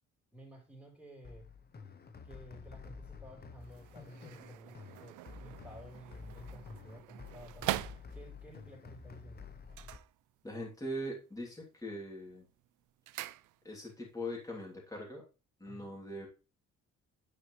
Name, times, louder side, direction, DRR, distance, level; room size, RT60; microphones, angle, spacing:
voice 1, 0.3-1.5 2.2-7.9 8.1-9.5 15.6-15.9, equal, 5° right, -2 dB, 4.2 m, -53 dB
sound 1, 1.2-10.0, left 5 dB, 30° left, 1.0 m, -50 dB
sound 2, 3.6-8.6 9.6-10.8 11.1-11.6 11.9-14.0 14.3-14.4, right 15 dB, 80° right, 0.5 m, -43 dB
voice 2, 10.4-12.4 13.6-15.2 15.6-16.3, equal, 10° left, -2 dB, 3.1 m, -41 dB
9.8 x 5.0 x 3.2 m, 0.31 s
cardioid pair, 90°, 30 cm